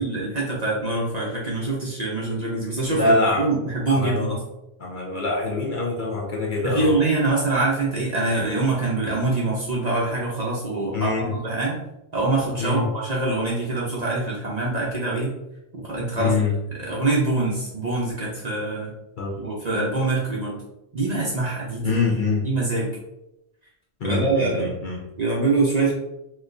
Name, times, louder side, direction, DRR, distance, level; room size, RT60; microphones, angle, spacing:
voice 1, 0.0-4.4 6.6-11.8 12.1-15.4 15.7-16.3 16.9-18.9 19.4-20.6 20.9-22.0 22.4-22.9 24.0-24.8 25.2-25.9, right 2 dB, 45° right, -4 dB, 0.6 m, -24 dB
voice 2, 2.9-3.5 3.9-4.3 4.8-6.9 10.9-11.3 12.6-12.9 16.2-16.6 19.2-19.3 21.8-22.4 24.0-25.0, left 3 dB, 50° left, -2 dB, 0.7 m, -24 dB
4.1 x 2.2 x 2.5 m, 0.87 s
omnidirectional pair, 1.2 m